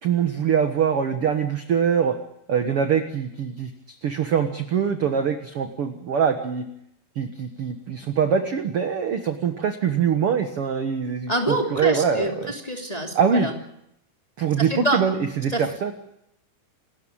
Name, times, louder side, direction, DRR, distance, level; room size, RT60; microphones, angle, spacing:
voice 1, 0.0-2.2 2.5-3.7 4.0-6.6 7.1-12.5 13.1-13.5 14.4-15.9, right 7 dB, 55° right, 7 dB, 1.7 m, -23 dB
voice 2, 11.3-13.5 14.6-15.0 15.5-15.6, right 1 dB, 10° left, 1 dB, 2.4 m, -26 dB
28.0 x 13.5 x 8.8 m, 0.77 s
omnidirectional pair, 4.3 m